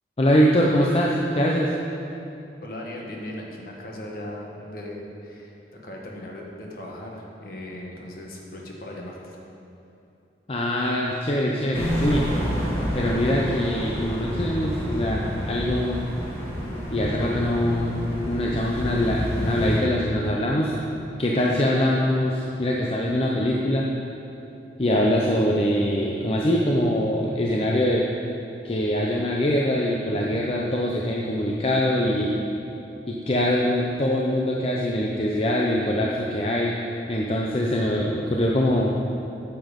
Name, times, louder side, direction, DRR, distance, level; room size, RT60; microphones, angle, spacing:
voice 1, 0.2-1.7 10.5-12.3 12.9-16.0 16.9-20.8 21.2-23.9 24.8-28.0 28.6-32.4 33.1-36.8 37.1-39.0, left 1 dB, 35° left, -2 dB, 0.6 m, -23 dB
voice 2, 2.6-9.4, left 1 dB, 55° left, -1 dB, 1.4 m, -38 dB
sound 1, 11.7-19.8, equal, 15° left, 2.1 m, -29 dB
9.3 x 7.2 x 5.2 m, 2.8 s
head